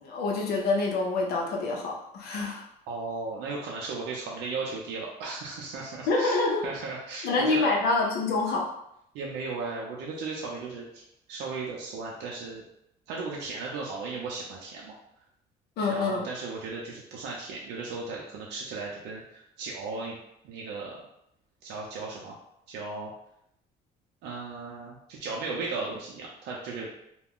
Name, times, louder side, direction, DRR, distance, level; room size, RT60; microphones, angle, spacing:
voice 1, 0.0-2.6 6.1-6.7 7.2-8.7 15.8-16.3, left 3 dB, 70° left, 0 dB, 0.7 m, -26 dB
voice 2, 2.9-7.6 9.1-11.0 11.3-12.6 13.1-14.9 15.9-20.2 20.4-21.1 21.6-22.4 22.7-23.1 24.2-26.9, right 3 dB, 85° right, -3 dB, 0.5 m, -36 dB
2.4 x 2.2 x 3.5 m, 0.77 s
cardioid pair, 110°, 17 cm